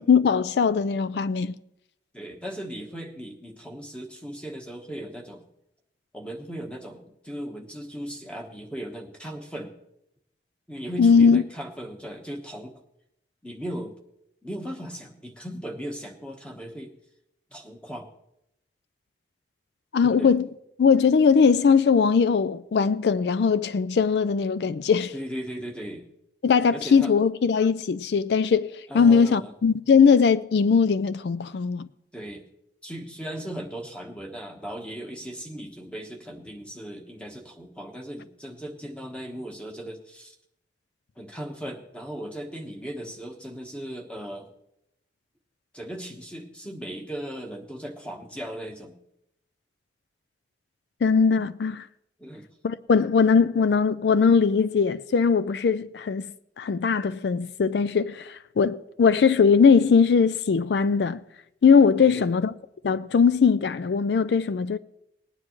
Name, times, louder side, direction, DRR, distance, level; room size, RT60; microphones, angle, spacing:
voice 1, 0.0-1.5 11.0-11.4 19.9-20.5 20.8-25.1 26.4-31.9 51.0-51.9 52.6-56.3 56.6-61.2 61.6-62.5 62.8-64.8, left 5 dB, 75° left, 0.4 m, -20 dB
voice 2, 2.1-5.4 6.1-9.7 10.7-12.8 13.4-14.0 14.4-16.9 17.5-18.1 20.0-20.3 25.1-26.1 26.7-27.1 28.9-29.5 32.1-32.4 32.8-40.3 41.2-44.5 45.7-49.0 52.2-52.5 62.0-62.3, equal, 5° left, 1.3 m, -37 dB
20.0 x 9.7 x 3.1 m
head